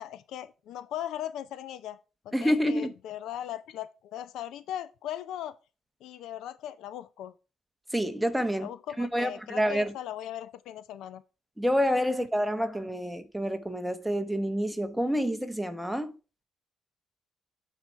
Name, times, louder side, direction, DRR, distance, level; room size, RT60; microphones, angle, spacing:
voice 1, 0.0-2.0 2.2-5.5 6.0-7.3 8.6-11.2, left 11 dB, 85° left, 0.5 m, -38 dB
voice 2, 2.3-2.9 7.9-8.7 9.0-9.9 11.6-16.2, equal, 5° right, 1.1 m, -28 dB
8.9 x 4.2 x 4.6 m
cardioid pair, 90°, 0 cm